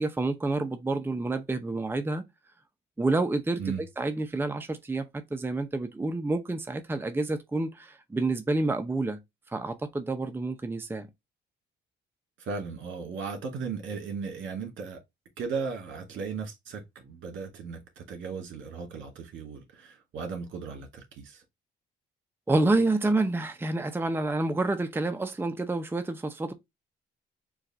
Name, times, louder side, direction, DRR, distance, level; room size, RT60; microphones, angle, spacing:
voice 1, 0.0-2.2 3.0-9.2 9.5-11.1 22.5-26.5, right 2 dB, 10° right, 0.7 m, -28 dB
voice 2, 12.4-15.0 15.4-21.4, right 5 dB, 75° right, 2.1 m, -36 dB
4.7 x 2.5 x 4.2 m
cardioid pair, 90°, 20 cm